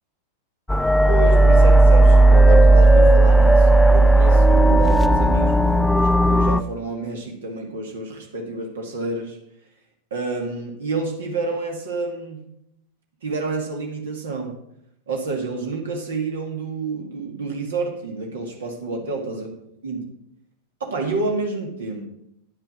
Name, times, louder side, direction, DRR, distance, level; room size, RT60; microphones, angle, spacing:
sound 1, 0.7-6.6, right 2 dB, 5° left, 0.3 m, -13 dB
voice 1, 1.1-9.4 10.1-12.4 13.2-14.6 15.1-19.5 19.8-20.1 20.8-22.0, right 3 dB, 65° right, 1 dB, 2.0 m, -29 dB
10.0 x 6.6 x 6.3 m, 0.75 s
figure-of-eight pair, 90°, 0 cm